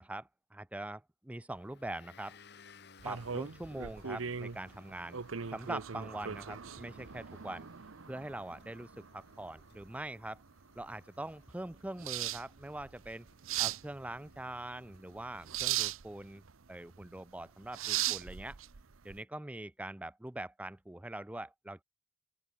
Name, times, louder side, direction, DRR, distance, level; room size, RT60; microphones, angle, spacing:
voice 1, 0.0-2.4 3.0-5.2 5.5-7.7 8.1-10.4 10.8-13.3 13.6-16.4 16.7-18.6 19.0-21.8, right 1 dB, 5° right, 0.4 m, -43 dB
Motor vehicle (road) / Engine, 1.5-15.7, left 5 dB, 55° left, 1.4 m, -63 dB
sound 1, 3.0-19.2, right 10 dB, 85° right, 0.8 m, -39 dB
open air
head